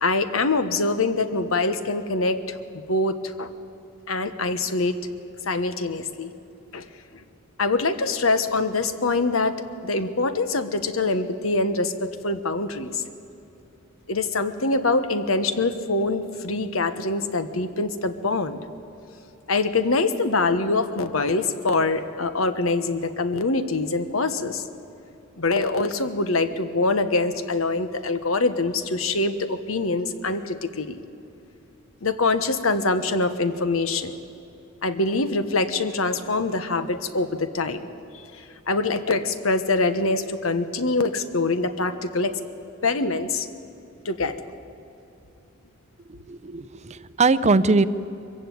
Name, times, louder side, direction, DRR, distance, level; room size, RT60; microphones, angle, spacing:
voice 1, 0.0-2.6 2.9-3.5 4.1-5.0 5.5-6.3 6.7-6.9 7.6-13.0 14.1-18.6 19.5-24.6 25.4-31.0 32.0-34.1 34.8-37.8 38.7-42.4 42.8-43.5 44.0-44.4, left 3 dB, 80° left, 11 dB, 1.2 m, -24 dB
voice 2, 46.1-47.8, right 3 dB, 35° right, 16 dB, 0.6 m, -21 dB
23.0 x 15.5 x 9.4 m, 2.9 s
head